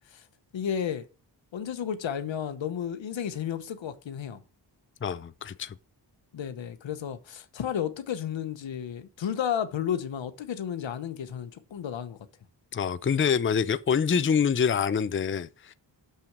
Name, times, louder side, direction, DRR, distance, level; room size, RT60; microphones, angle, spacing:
voice 1, 0.5-1.0 1.5-4.4 6.3-12.2, left 8 dB, 80° left, 1.0 m, -32 dB
voice 2, 5.0-5.7 12.7-15.7, left 7 dB, 30° left, 0.5 m, -26 dB
6.9 x 5.7 x 6.0 m
cardioid pair, 45°, 44 cm